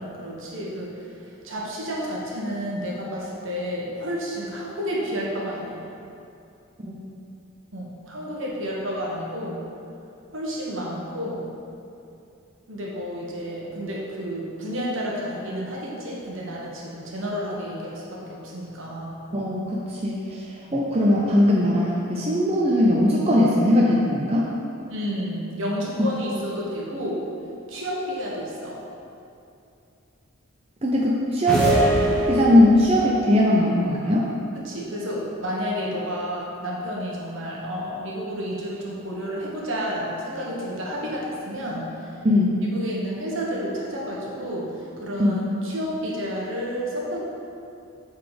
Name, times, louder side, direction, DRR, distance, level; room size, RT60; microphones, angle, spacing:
voice 1, 0.0-5.8 7.7-9.6 10.3-11.5 12.7-19.2 20.7-20.8 24.9-27.2 27.7-28.8 34.5-42.1 42.7-47.2, equal, 65° right, -4 dB, 1.4 m, -31 dB
voice 2, 19.3-24.5 30.8-31.7 32.3-34.3 42.2-42.6 45.2-45.5, left 1 dB, 25° right, -4 dB, 0.5 m, -20 dB
sound 1, 31.5-33.0, right 1 dB, 5° left, 1.2 m, -22 dB
8.0 x 4.0 x 5.1 m, 2.6 s
head